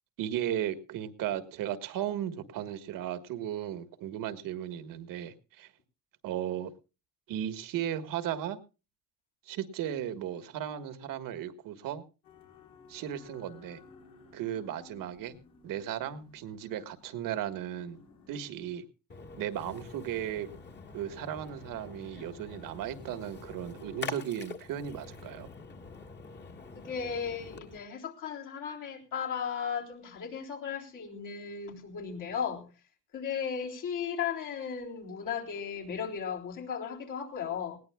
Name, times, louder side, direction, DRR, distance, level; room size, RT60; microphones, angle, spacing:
voice 1, 0.2-5.7 6.2-6.7 7.3-8.6 9.5-12.0 12.9-13.8 14.3-15.3 15.6-18.0 18.3-18.8 19.4-20.5 20.9-25.5, right 10 dB, 75° right, 1.5 m, -36 dB
sound 1, 12.2-18.5, left 5 dB, 85° left, 4.2 m, -57 dB
Splash splatter, 19.1-27.8, left 4 dB, 30° left, 1.6 m, -45 dB
voice 2, 26.7-32.7 33.1-37.8, left 7 dB, 65° left, 3.8 m, -36 dB
19.5 x 17.0 x 2.3 m
cardioid pair, 110°, 34 cm